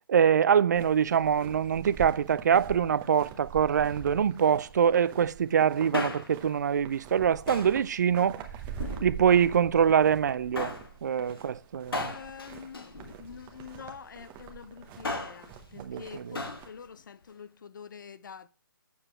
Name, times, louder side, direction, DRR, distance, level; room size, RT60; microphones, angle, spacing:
voice 1, 0.1-8.4 9.0-10.7 11.0-12.1 15.8-16.4, right 8 dB, 50° right, 0.4 m, -24 dB
sound 1, 0.7-16.7, right 8 dB, 15° right, 0.8 m, -44 dB
Male speech man speaking, 5.7-6.5 7.5-7.8 8.7-9.5 10.5-10.9 11.9-13.6 14.8-15.5 16.3-16.7 17.0-17.1, left 3 dB, 85° left, 1.4 m, -36 dB
voice 2, 11.9-18.5, left 6 dB, 60° left, 0.6 m, -46 dB
7.1 x 6.7 x 4.3 m
hypercardioid pair, 150°, 12 cm